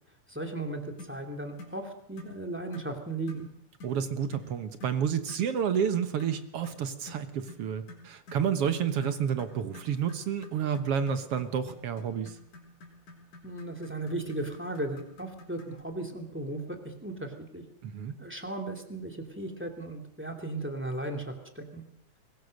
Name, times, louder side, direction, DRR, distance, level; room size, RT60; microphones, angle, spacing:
voice 1, 0.3-3.5 13.4-17.6 18.2-21.8, right 2 dB, 5° right, 4 dB, 2.3 m, -36 dB
clear plastic globe dropping, 1.0-1.2 1.6-1.8 2.2-2.4 2.7-2.9 3.3-3.5 3.8-4.0 4.3-4.5 4.8-5.0 5.3-5.5 5.7-5.9 6.2-15.8, left 2 dB, 70° left, 5.6 m, -49 dB
voice 2, 3.8-12.4 17.8-18.1, right 8 dB, 60° right, 10 dB, 1.9 m, -30 dB
23.0 x 20.0 x 6.6 m, 0.70 s
omnidirectional pair, 3.5 m